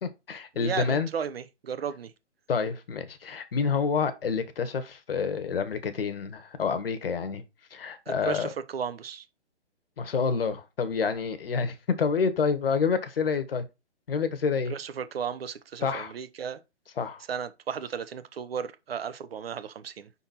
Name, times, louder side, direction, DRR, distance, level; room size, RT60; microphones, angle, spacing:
voice 1, 0.0-1.1 2.5-7.4 7.7-8.5 10.0-13.7 14.1-14.7 15.8-16.1 17.0-17.2, left 5 dB, 50° left, 1.1 m, -28 dB
voice 2, 0.6-2.1 8.1-9.3 14.7-16.6 17.3-20.1, right 7 dB, 55° right, 0.8 m, -34 dB
5.6 x 4.1 x 4.1 m
hypercardioid pair, 160°, 36 cm